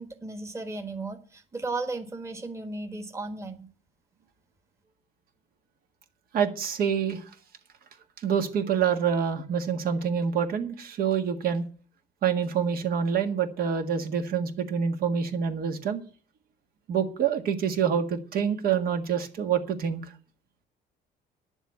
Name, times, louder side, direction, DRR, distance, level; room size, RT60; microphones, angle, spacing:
voice 1, 0.0-3.7, right 3 dB, 15° right, 6 dB, 1.5 m, -35 dB
voice 2, 6.3-7.2 8.2-11.6 12.2-16.0 16.9-20.0, right 7 dB, 60° right, 6 dB, 1.7 m, -26 dB
10.5 x 7.2 x 8.4 m, 0.42 s
cardioid pair, 110°, 17 cm